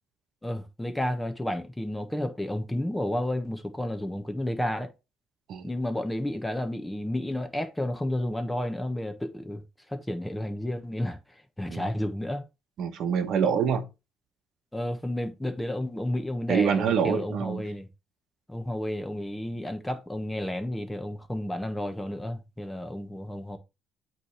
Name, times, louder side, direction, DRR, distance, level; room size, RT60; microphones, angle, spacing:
voice 1, 0.4-4.9 5.6-9.6 9.9-11.2 11.6-12.4 14.7-17.9 18.5-23.6, left 1 dB, 5° left, 1.3 m, -31 dB
voice 2, 12.8-13.9 16.5-17.6, right 7 dB, 65° right, 1.1 m, -26 dB
8.5 x 3.4 x 4.6 m
cardioid pair, 100°, 0 cm